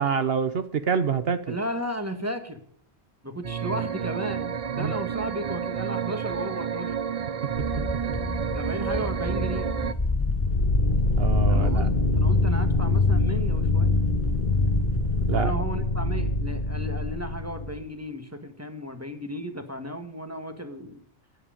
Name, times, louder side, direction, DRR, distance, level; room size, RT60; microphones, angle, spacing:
voice 1, 0.0-1.4 4.7-4.9 11.2-11.9 15.3-15.5, right 6 dB, 60° right, 11 dB, 1.0 m, -26 dB
voice 2, 1.5-2.6 3.2-7.0 8.5-9.7 11.5-14.0 15.3-21.0, equal, 15° right, 7 dB, 1.7 m, -34 dB
sound 1, 3.4-9.9, right 8 dB, 40° right, 0.6 m, -30 dB
sound 2, 7.6-15.3, left 1 dB, 15° left, 0.9 m, -31 dB
sound 3, 10.0-17.8, left 2 dB, 45° left, 1.4 m, -24 dB
13.0 x 10.0 x 5.1 m, 0.62 s
omnidirectional pair, 1.2 m